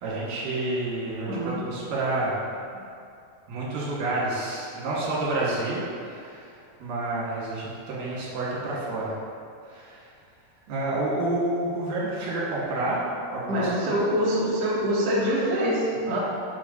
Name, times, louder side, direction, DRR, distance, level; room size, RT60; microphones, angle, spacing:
voice 1, 0.0-2.4 3.5-6.5 6.8-9.1 9.7-10.1 10.7-13.0 13.3-14.0, right 2 dB, 75° right, -7 dB, 3.0 m, -29 dB
voice 2, 1.2-1.7 13.5-16.2, equal, 60° right, -6 dB, 1.8 m, -25 dB
10.0 x 5.0 x 2.6 m, 2.5 s
omnidirectional pair, 4.1 m